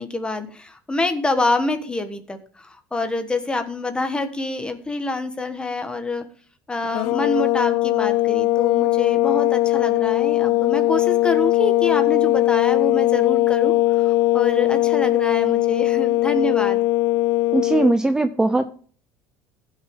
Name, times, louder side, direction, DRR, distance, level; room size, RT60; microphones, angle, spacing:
voice 1, 0.0-6.2 6.7-13.7 14.0-16.8, left 2 dB, 15° left, 8 dB, 1.4 m, -26 dB
sound 1, 6.9-18.0, left 17 dB, 70° left, 0.4 m, -19 dB
voice 2, 17.5-18.6, right 2 dB, 10° right, 9 dB, 0.7 m, -19 dB
15.5 x 6.0 x 3.7 m, 0.43 s
supercardioid pair, 115°, 7 cm